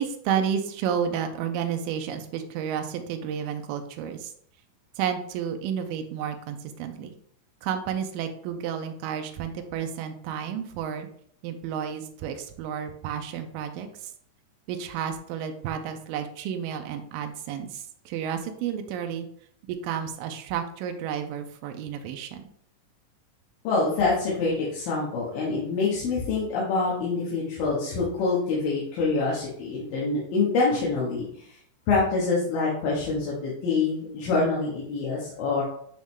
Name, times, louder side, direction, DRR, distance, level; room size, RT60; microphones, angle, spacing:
voice 1, 0.0-4.3 5.0-7.1 7.6-11.1 11.4-14.1 14.7-19.3 19.8-22.4, right 8 dB, 85° right, 6 dB, 2.4 m, -31 dB
voice 2, 23.6-31.6 31.9-35.6, left 3 dB, 90° left, -6 dB, 3.0 m, -26 dB
8.7 x 3.1 x 3.6 m, 0.66 s
omnidirectional pair, 4.0 m